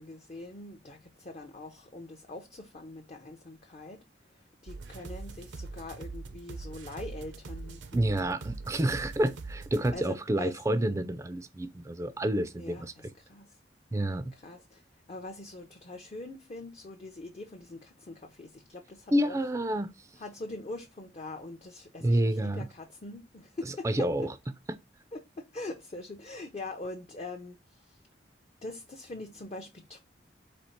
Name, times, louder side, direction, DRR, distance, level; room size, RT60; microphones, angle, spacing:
voice 1, 0.0-8.1 9.9-10.8 12.6-13.6 14.3-19.4 20.2-24.3 25.1-28.0 28.6-30.0, left 2 dB, 35° left, 0.5 m, -43 dB
sound 1, 4.7-9.9, right 3 dB, 80° right, 0.6 m, -42 dB
voice 2, 7.9-12.9 13.9-14.3 19.1-19.9 22.0-22.7 23.8-24.3, right 1 dB, 15° right, 0.3 m, -28 dB
4.2 x 2.8 x 4.3 m
head